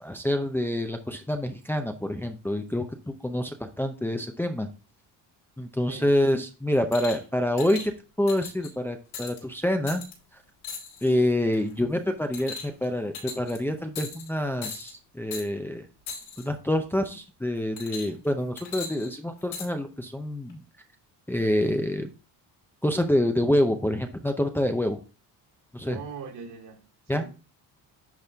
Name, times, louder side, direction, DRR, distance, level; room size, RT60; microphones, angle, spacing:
voice 1, 0.0-2.8 3.2-4.7 5.6-7.8 8.2-10.0 11.0-15.8 16.4-20.6 21.3-22.1 22.8-25.0 25.7-26.0 27.1-27.2, left 1 dB, 5° left, 0.6 m, -26 dB
sound 1, 6.9-7.2 7.6-7.9 8.3-8.7 9.1-9.4 9.9-10.1 10.6-11.1 11.5-11.8 12.3-12.8 13.1-13.6 13.9-14.3 14.6-14.9 15.3-15.5 16.1-16.4 17.8-18.3 18.6-19.7 20.5-20.6, left 5 dB, 80° left, 4.5 m, -38 dB
voice 2, 25.8-27.3, right 6 dB, 70° right, 2.9 m, -41 dB
10.5 x 4.2 x 3.5 m
cardioid pair, 125°, 40 cm